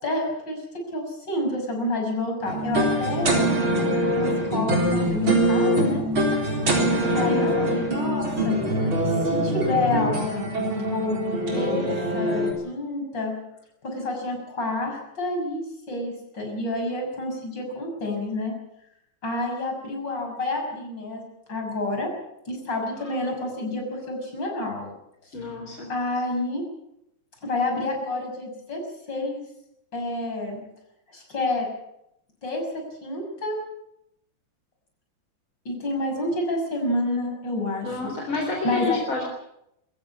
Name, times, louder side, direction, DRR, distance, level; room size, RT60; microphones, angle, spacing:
voice 1, 0.0-3.5 4.1-6.1 7.0-10.4 10.9-11.2 11.5-13.4 13.8-18.5 19.2-22.1 22.5-24.9 25.2-25.3 25.9-26.7 27.4-29.4 29.9-30.6 31.1-31.7 32.4-33.6 35.6-39.0, left 2 dB, 60° left, 2 dB, 6.9 m, -29 dB
sound 1, 2.5-12.5, right 1 dB, 85° right, 4.9 m, -23 dB
voice 2, 6.9-7.7 25.3-25.9 37.8-39.2, left 3 dB, 85° left, 1 dB, 4.6 m, -29 dB
23.5 x 15.0 x 8.5 m, 0.80 s
omnidirectional pair, 2.2 m